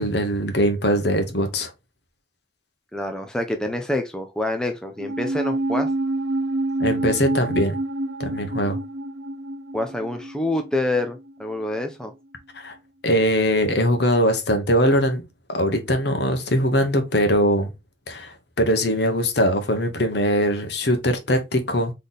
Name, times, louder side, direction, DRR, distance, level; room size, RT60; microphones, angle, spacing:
voice 1, 0.0-1.7 6.8-7.7 8.2-8.8 12.5-12.7 13.0-15.2 15.5-17.7 18.1-21.9, equal, 65° left, 1.1 m, -21 dB
voice 2, 2.9-5.9 9.7-12.1, left 1 dB, 5° left, 0.5 m, -27 dB
sound 1, 5.0-11.5 11.8-11.9, right 2 dB, 85° right, 0.8 m, -28 dB
4.0 x 3.4 x 4.0 m
head